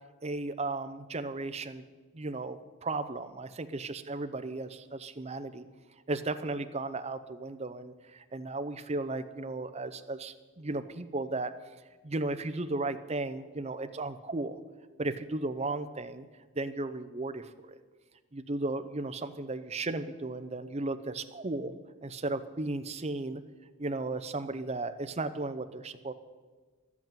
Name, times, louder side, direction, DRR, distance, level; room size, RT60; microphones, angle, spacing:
voice 1, 0.2-1.8 2.1-5.6 6.1-11.5 12.0-14.6 15.0-16.3 16.5-17.8 18.3-23.4 23.8-26.1, right 2 dB, 30° right, 10 dB, 0.6 m, -35 dB
12.0 x 8.4 x 9.0 m, 1.4 s
head